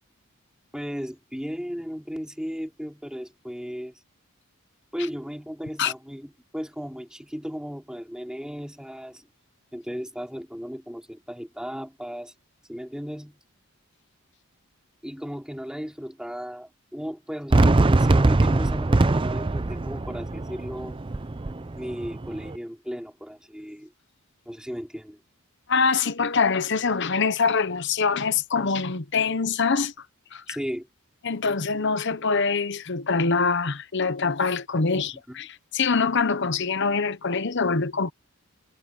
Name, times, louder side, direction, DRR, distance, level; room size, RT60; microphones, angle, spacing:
voice 1, 0.7-3.9 4.9-9.3 9.7-12.3 12.7-13.4 15.0-21.0 21.7-23.9 24.4-25.2 30.5-30.9 34.9-35.4, equal, 5° right, 3.4 m, -35 dB
Fireworks, 17.5-22.6, right 2 dB, 25° right, 0.5 m, -22 dB
voice 2, 25.7-29.9 30.3-30.6 31.2-35.5 35.7-38.1, left 4 dB, 55° left, 1.0 m, -24 dB
head